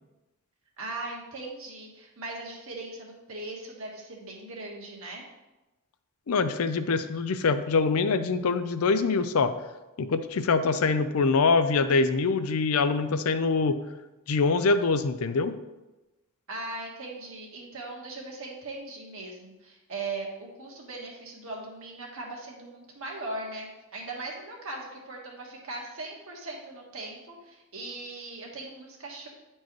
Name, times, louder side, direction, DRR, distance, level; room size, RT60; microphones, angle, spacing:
voice 1, 0.8-5.2 16.5-29.3, right 2 dB, 70° right, -2 dB, 1.5 m, -39 dB
voice 2, 6.3-9.5 10.0-13.8 14.3-15.6, left 4 dB, 80° left, 11 dB, 0.5 m, -24 dB
9.5 x 4.4 x 3.1 m, 1.1 s
head